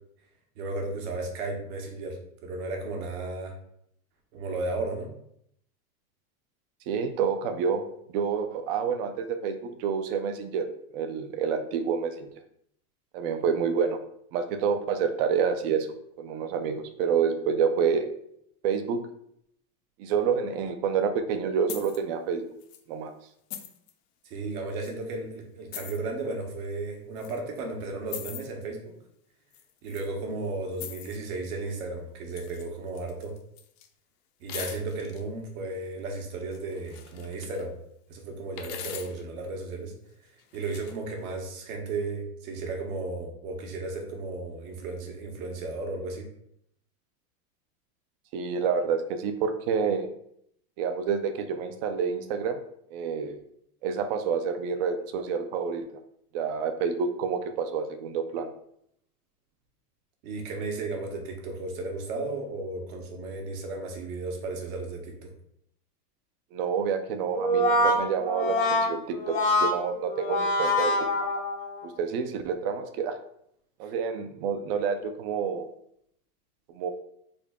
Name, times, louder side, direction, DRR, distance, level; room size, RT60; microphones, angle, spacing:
voice 1, 0.6-3.6 4.3-5.1 24.2-28.9 29.8-33.4 34.4-37.7 38.1-39.9 40.5-46.3 60.2-65.3 73.8-73.9, right 3 dB, 65° right, 2 dB, 1.1 m, -34 dB
voice 2, 6.9-7.8 8.1-10.7 10.9-12.3 13.1-14.0 14.3-15.9 16.2-18.1 18.6-19.0 20.0-22.4 22.9-23.1 48.3-50.1 50.8-52.6 52.9-53.4 53.8-55.9 56.3-58.5 66.5-70.9 71.8-73.2 73.8-75.7 76.7-76.9, right 6 dB, 40° right, 8 dB, 0.4 m, -28 dB
sound 1, 21.7-22.0 22.6-22.8 23.5-23.9 24.8-24.9 25.7-26.0 27.2-27.4 28.1-28.5 29.5-30.1 30.7-31.2 32.3-32.7 32.9-33.9 34.5-35.2 36.5-37.7 38.6-39.2 40.4-41.0, left 9 dB, 65° left, 0.7 m, -41 dB
Brass instrument, 67.3-71.9, left 1 dB, 30° left, 0.5 m, -25 dB
3.7 x 2.1 x 3.5 m, 0.71 s
supercardioid pair, 140°, 46 cm